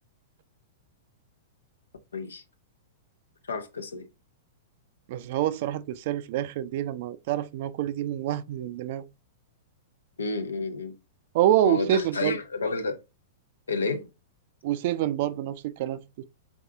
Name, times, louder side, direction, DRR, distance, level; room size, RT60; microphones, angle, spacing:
voice 1, 3.5-4.0 10.2-10.9 11.6-13.0 13.7-14.1, left 3 dB, 75° left, 0.7 m, -30 dB
voice 2, 5.1-9.0 11.3-12.4 14.6-16.2, right 12 dB, 50° right, 0.4 m, -27 dB
3.8 x 3.6 x 3.4 m
figure-of-eight pair, 100°, 0 cm